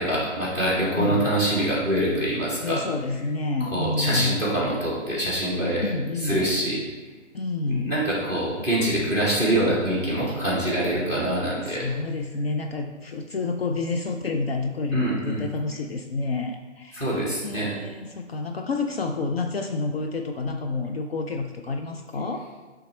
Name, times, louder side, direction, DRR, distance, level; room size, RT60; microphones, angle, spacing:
voice 1, 0.0-2.8 3.6-5.8 6.2-6.8 7.7-11.8 14.9-15.4 16.9-17.7, right 1 dB, 5° left, -5 dB, 0.8 m, -25 dB
voice 2, 1.0-1.3 2.6-4.4 5.8-6.4 7.3-7.9 11.6-22.4, left 3 dB, 50° left, 4 dB, 0.5 m, -29 dB
8.3 x 3.5 x 3.2 m, 1.3 s
figure-of-eight pair, 145°, 38 cm